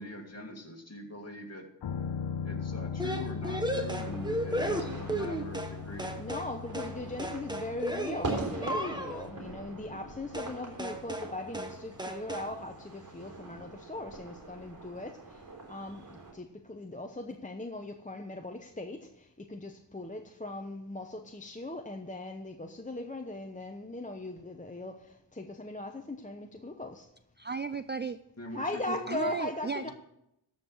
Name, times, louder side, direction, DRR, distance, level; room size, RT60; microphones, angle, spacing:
voice 1, 0.0-1.7 2.4-6.2 28.4-29.2 29.8-29.9, left 1 dB, 35° left, 2 dB, 2.1 m, -43 dB
sound 1, 1.8-13.4 13.7-13.8, left 6 dB, 80° left, 0.7 m, -40 dB
sound 2, 3.0-5.7 6.0-6.5 6.7-6.9 7.2-9.3 10.3-10.5 10.8-11.3 11.5-11.7 12.0-12.5, right 1 dB, 10° right, 1.2 m, -34 dB
sound 3, 4.0-16.3, right 2 dB, 45° right, 3.7 m, -43 dB
voice 2, 6.2-27.1 28.5-29.9, left 2 dB, 15° left, 3 dB, 0.8 m, -39 dB
voice 3, 27.4-28.2 28.9-29.9, right 4 dB, 25° right, 12 dB, 0.3 m, -35 dB
14.0 x 5.6 x 6.2 m, 0.81 s
wide cardioid pair, 80°, 43 cm